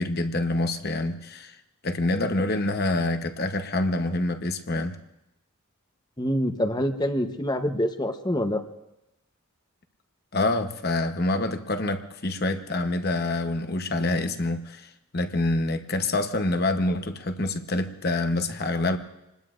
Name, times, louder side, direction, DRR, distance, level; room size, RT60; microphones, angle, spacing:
voice 1, 0.0-5.0 10.3-19.0, left 2 dB, 45° left, 7 dB, 1.0 m, -26 dB
voice 2, 6.2-8.6, equal, 20° left, 6 dB, 0.9 m, -26 dB
28.0 x 20.5 x 2.6 m, 0.91 s
head